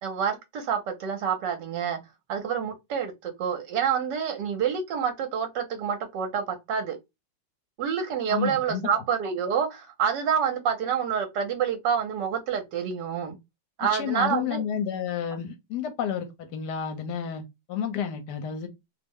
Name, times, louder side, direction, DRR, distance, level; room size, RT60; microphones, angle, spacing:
voice 1, 0.0-2.0 2.3-7.0 7.8-13.4 13.8-14.6, right 7 dB, 75° right, 1.3 m, -28 dB
voice 2, 8.3-8.9 13.9-18.7, left 8 dB, 70° left, 1.2 m, -31 dB
3.1 x 2.0 x 3.4 m
omnidirectional pair, 2.0 m